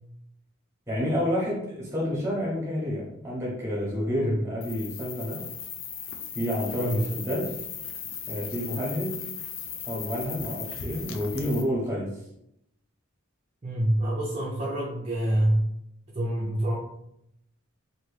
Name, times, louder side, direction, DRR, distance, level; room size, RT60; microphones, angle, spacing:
voice 1, 0.9-5.4 6.3-7.5 8.3-9.2 9.8-12.1, equal, 15° right, -4 dB, 1.0 m, -29 dB
sound 1, 4.6-11.6, left 7 dB, 65° left, 0.5 m, -37 dB
voice 2, 13.6-15.7 16.1-16.8, right 1 dB, 30° right, -7 dB, 0.5 m, -26 dB
2.9 x 2.7 x 3.2 m, 0.79 s
head